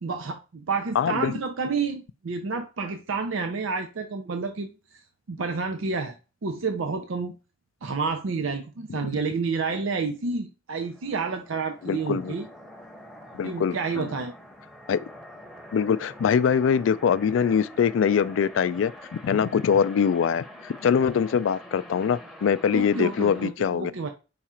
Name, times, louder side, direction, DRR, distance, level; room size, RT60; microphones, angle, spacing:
voice 1, 0.0-4.7 5.3-6.1 6.4-7.3 7.8-12.5 13.4-14.3 22.7-24.1, right 4 dB, 90° right, 0.5 m, -29 dB
voice 2, 1.0-1.3 11.8-12.3 13.3-14.1 14.9-15.0 15.7-18.9 19.2-23.9, left 7 dB, 75° left, 0.3 m, -23 dB
sound 1, 10.7-23.5, left 1 dB, ahead, 0.7 m, -46 dB
4.8 x 2.4 x 4.2 m
head